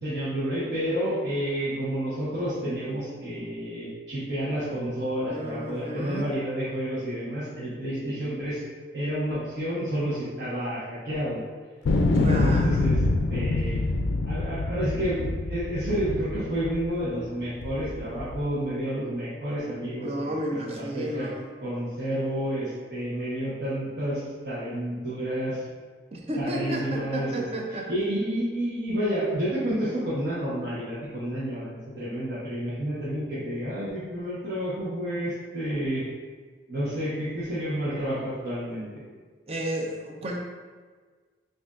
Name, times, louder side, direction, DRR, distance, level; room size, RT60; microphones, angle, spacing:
voice 1, 0.0-8.6 8.9-11.4 12.2-13.0 13.3-13.8 14.3-20.3 20.7-21.3 21.6-25.6 26.4-27.5 27.9-36.0 36.7-38.9, equal, 65° right, -10 dB, 1.0 m, -30 dB
voice 2, 5.3-6.3 12.1-12.9 20.0-21.5 26.1-27.9 39.5-40.4, right 1 dB, 35° right, 0 dB, 0.5 m, -32 dB
sound 1, 11.9-17.1 17.6-18.4, left 2 dB, 85° left, 0.3 m, -25 dB
6.0 x 2.6 x 2.4 m, 1.5 s
head